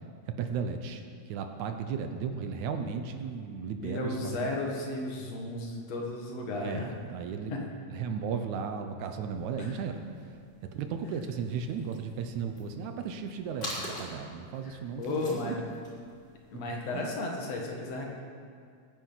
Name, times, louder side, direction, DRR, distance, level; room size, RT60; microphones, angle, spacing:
voice 1, 0.4-1.0 1.3-4.5 6.6-7.5 7.9-10.0 10.7-15.6 16.9-17.1, right 6 dB, 80° right, 6 dB, 2.2 m, -35 dB
voice 2, 3.8-6.9 7.5-7.7 9.6-9.7 14.6-15.6 16.5-18.1, left 2 dB, 60° left, 0 dB, 2.8 m, -34 dB
sound 1, 9.3-16.9, left 1 dB, 25° left, 4.4 m, -46 dB
20.5 x 9.9 x 4.0 m, 2.2 s
omnidirectional pair, 3.4 m